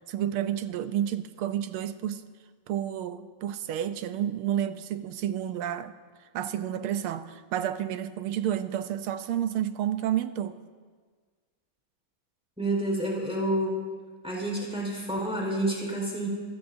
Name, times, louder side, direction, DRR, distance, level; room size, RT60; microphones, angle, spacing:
voice 1, 0.1-2.2 2.7-5.9 6.3-10.6, right 10 dB, 85° right, 1.6 m, -30 dB
voice 2, 12.6-13.8 14.2-16.3, right 1 dB, ahead, 4.2 m, -29 dB
29.0 x 14.5 x 2.7 m
omnidirectional pair, 2.3 m